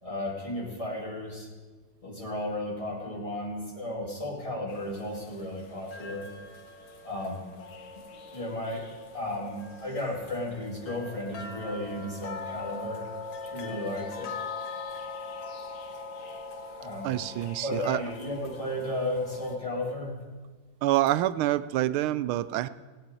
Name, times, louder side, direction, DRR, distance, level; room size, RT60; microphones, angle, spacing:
voice 1, 0.0-1.5 2.0-6.3 7.0-7.4 8.1-8.9 9.1-13.0 13.4-14.3 16.8-17.1 17.6-20.2, left 1 dB, 15° left, 0 dB, 2.3 m, -34 dB
sound 1, 4.7-19.6, left 4 dB, 80° left, 2.1 m, -42 dB
voice 2, 17.0-18.0 20.8-22.7, right 14 dB, 90° right, 15 dB, 1.5 m, -27 dB
17.5 x 7.7 x 9.0 m, 1.4 s
omnidirectional pair, 2.3 m